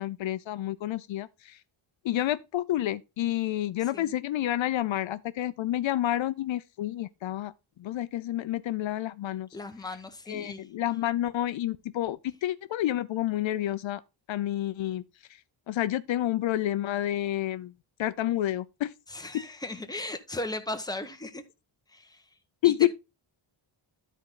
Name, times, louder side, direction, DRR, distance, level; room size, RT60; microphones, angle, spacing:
voice 1, 0.0-1.6 2.0-7.5 7.8-9.5 10.3-14.0 14.3-15.0 15.7-17.7 18.0-18.9 19.3-19.4 22.6-22.9, left 13 dB, 70° left, 0.6 m, -29 dB
voice 2, 3.8-4.1 9.5-10.7 19.1-21.4 21.9-22.2 22.6-22.9, left 2 dB, 10° left, 1.1 m, -37 dB
12.0 x 4.5 x 3.7 m
wide cardioid pair, 150°, 48 cm